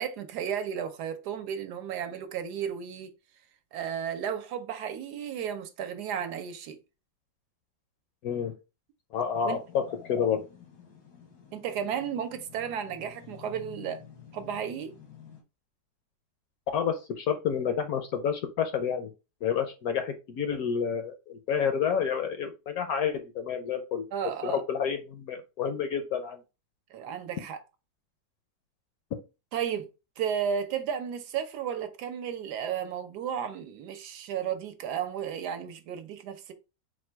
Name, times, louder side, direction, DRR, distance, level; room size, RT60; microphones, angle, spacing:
voice 1, 0.0-3.1 3.7-6.8 9.4-9.6 11.5-14.0 14.3-14.9 24.1-24.6 26.9-27.6 29.5-29.9 30.2-36.5, right 8 dB, 75° right, 1.1 m, -33 dB
voice 2, 9.1-10.4 16.7-19.1 19.4-24.0 24.4-26.4, left 7 dB, 70° left, 0.9 m, -29 dB
sound 1, 9.3-15.4, left 9 dB, 85° left, 1.8 m, -51 dB
4.4 x 2.2 x 4.3 m
omnidirectional pair, 1.9 m